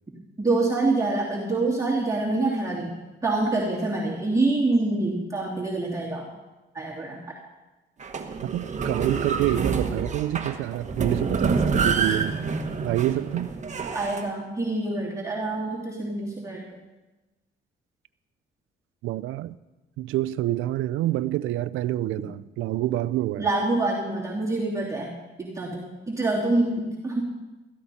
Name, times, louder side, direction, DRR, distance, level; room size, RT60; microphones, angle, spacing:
voice 1, 0.4-6.3 6.7-7.2 13.9-16.7 23.4-25.1 25.4-27.2, right 2 dB, 15° right, 2.9 m, -26 dB
sound 1, 8.0-14.2, right 5 dB, 35° right, 1.4 m, -27 dB
voice 2, 8.5-12.4 12.8-13.5 19.0-19.5 20.0-23.5, right 14 dB, 85° right, 0.5 m, -27 dB
16.5 x 14.0 x 4.2 m
cardioid pair, 90°, 20 cm